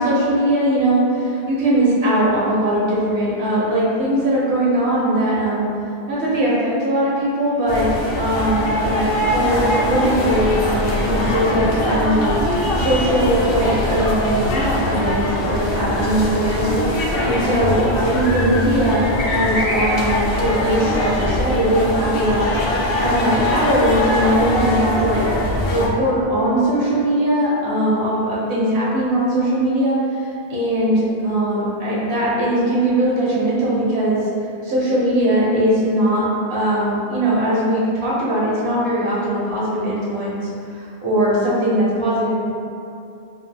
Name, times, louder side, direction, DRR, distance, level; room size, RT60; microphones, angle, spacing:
voice 1, 0.0-5.7 6.1-7.9 8.2-22.5 23.0-25.2 25.7-34.2 34.6-36.2 36.5-40.4 40.7-42.3, right 1 dB, 80° right, -7 dB, 1.2 m, -20 dB
sound 1, 7.7-25.9, left 1 dB, 65° left, 0.8 m, -22 dB
sound 2, 7.8-17.7, equal, 20° right, 0.4 m, -36 dB
3.7 x 2.4 x 3.4 m, 2.6 s
omnidirectional pair, 1.1 m